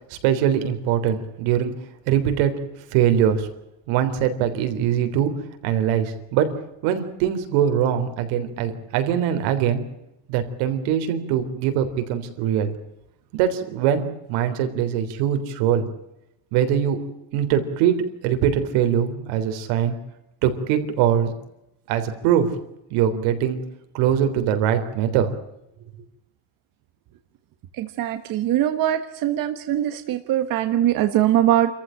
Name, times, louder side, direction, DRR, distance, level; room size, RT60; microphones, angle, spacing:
voice 1, 0.1-1.7 2.1-2.5 2.9-3.5 3.9-5.3 5.6-6.5 6.8-9.8 10.3-12.7 13.3-15.9 16.5-17.0 17.3-18.0 18.2-20.0 20.4-21.3 21.9-22.6 22.9-23.6 23.9-25.3, right 9 dB, 85° right, 8 dB, 3.7 m, -22 dB
voice 2, 27.8-31.7, right 12 dB, 45° right, 8 dB, 1.4 m, -22 dB
28.5 x 14.5 x 9.0 m, 0.89 s
cardioid pair, 170°, 46 cm